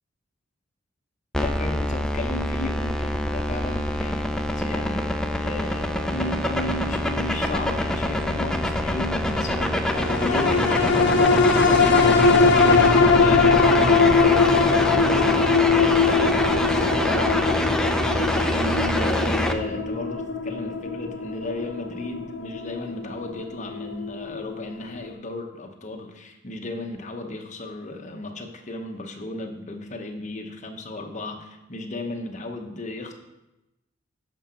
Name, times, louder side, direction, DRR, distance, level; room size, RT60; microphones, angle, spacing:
sound 1, 1.3-19.5, left 1 dB, 5° left, 0.5 m, -25 dB
voice 1, 1.4-33.1, left 1 dB, 40° left, 4 dB, 1.0 m, -35 dB
sound 2, 9.9-24.6 25.0-25.1, left 4 dB, 60° left, 0.8 m, -21 dB
9.9 x 6.2 x 4.3 m, 0.96 s
head